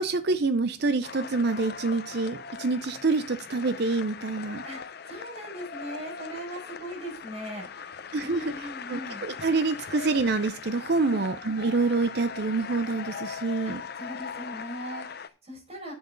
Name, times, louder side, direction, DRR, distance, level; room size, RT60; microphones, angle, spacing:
voice 1, 0.0-4.6 8.1-13.8, right 3 dB, 55° right, 0.6 m, -27 dB
sound 1, 1.0-15.3, left 6 dB, 55° left, 0.6 m, -40 dB
voice 2, 4.6-9.3 11.0-11.3 13.6-15.9, equal, 30° right, 5.3 m, -40 dB
10.5 x 7.9 x 3.9 m
head